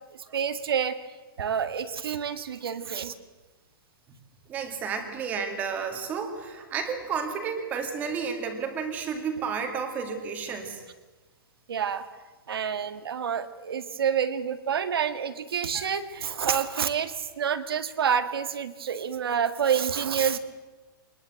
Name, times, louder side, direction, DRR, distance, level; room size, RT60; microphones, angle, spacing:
voice 1, 0.1-1.0 1.4-3.1 11.7-12.0 12.5-20.4, right 8 dB, 80° right, 10 dB, 2.0 m, -28 dB
voice 2, 4.5-10.8, right 6 dB, 15° right, 5 dB, 2.1 m, -32 dB
24.0 x 20.0 x 7.8 m, 1.2 s
hypercardioid pair, 180°, 12 cm